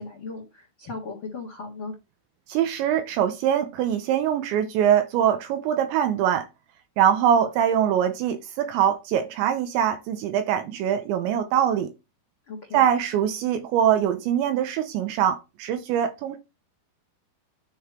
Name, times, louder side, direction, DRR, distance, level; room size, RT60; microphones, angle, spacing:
voice 1, 0.0-1.9 12.5-12.8, left 3 dB, 65° left, 1.2 m, -37 dB
voice 2, 2.5-6.5 7.0-11.9 12.7-16.4, right 9 dB, 80° right, 2.8 m, -23 dB
9.5 x 4.0 x 4.4 m
omnidirectional pair, 5.7 m